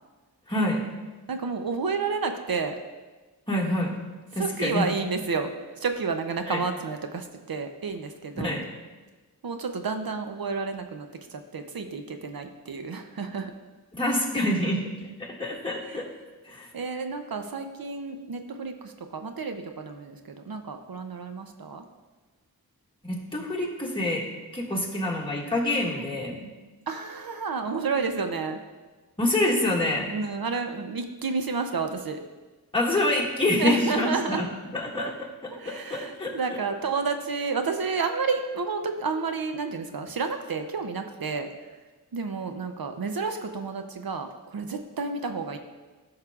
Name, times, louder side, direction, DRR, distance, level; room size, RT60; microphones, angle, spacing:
voice 1, 0.5-0.8 3.5-4.0 4.3-4.9 6.5-6.6 8.4-8.6 13.9-14.8 15.2-16.1 16.4-16.7 23.0-24.3 24.5-26.5 29.2-30.1 32.7-34.5 34.7-35.1 35.7-36.3, left 1 dB, 15° left, -4 dB, 1.9 m, -26 dB
voice 2, 1.3-2.7 4.4-5.5 5.8-8.6 9.4-13.5 15.9-16.0 16.7-21.8 26.0-26.1 26.9-28.6 30.1-32.2 33.6-34.4 35.0-35.1 35.5-41.5 42.1-45.6, right 4 dB, 70° right, 6 dB, 0.7 m, -30 dB
13.0 x 6.5 x 2.4 m, 1.3 s
wide cardioid pair, 55°, 38 cm